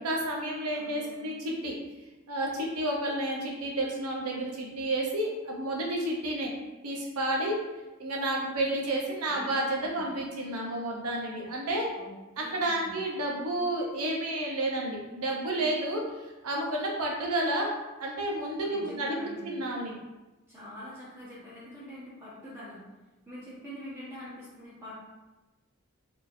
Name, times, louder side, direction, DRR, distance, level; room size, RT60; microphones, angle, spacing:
voice 1, 0.0-1.8 2.3-6.5 6.8-7.6 8.0-11.9 12.4-16.0 16.4-19.2 19.4-19.9, right 1 dB, 90° right, -1 dB, 0.8 m, -31 dB
voice 2, 0.7-1.3 9.2-10.1 11.9-13.0 18.6-19.5 20.5-22.8 23.2-25.0, left 1 dB, 10° right, -11 dB, 1.3 m, -45 dB
4.3 x 3.0 x 2.6 m, 1.1 s
head